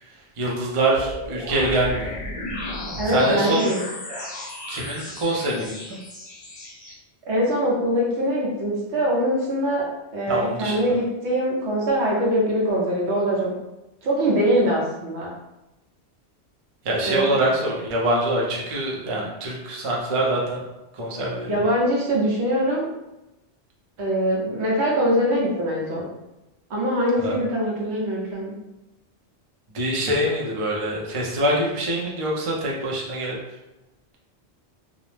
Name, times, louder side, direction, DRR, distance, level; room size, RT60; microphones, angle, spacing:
voice 1, 0.4-2.1 3.1-3.7 4.7-6.0 10.3-11.0 16.8-20.6 20.9-21.6 27.2-27.4 29.7-33.4, right 1 dB, 40° right, -3 dB, 0.5 m, -24 dB
sound 1, 0.9-6.9, left 1 dB, 50° left, 0.4 m, -34 dB
voice 2, 3.0-3.8 7.2-9.8 10.1-13.5 14.0-15.3 17.1-17.3 21.5-22.8 24.0-26.0 26.7-28.5, equal, 80° right, -4 dB, 1.1 m, -23 dB
2.6 x 2.0 x 3.1 m, 0.96 s
omnidirectional pair, 1.1 m